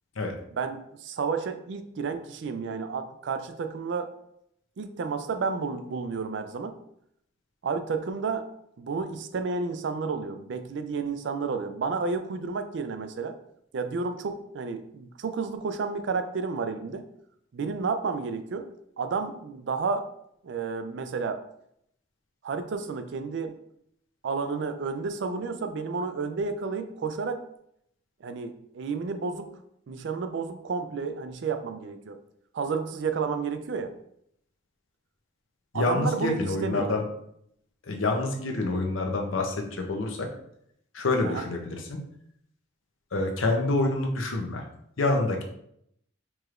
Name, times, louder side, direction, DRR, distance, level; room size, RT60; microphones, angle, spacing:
voice 1, 0.6-4.1 4.8-6.8 7.6-8.5 8.8-13.4 13.7-17.0 17.5-18.7 19.0-20.1 20.4-21.4 22.4-23.6 24.2-27.4 28.2-29.5 29.9-32.2 32.5-33.9 35.7-36.9 41.2-41.4, right 4 dB, 60° right, 9 dB, 0.4 m, -31 dB
voice 2, 35.7-37.0 37.9-40.3 40.9-42.0 43.1-44.6 45.0-45.4, left 2 dB, 80° left, 2 dB, 0.7 m, -27 dB
4.7 x 3.1 x 2.4 m, 0.73 s
head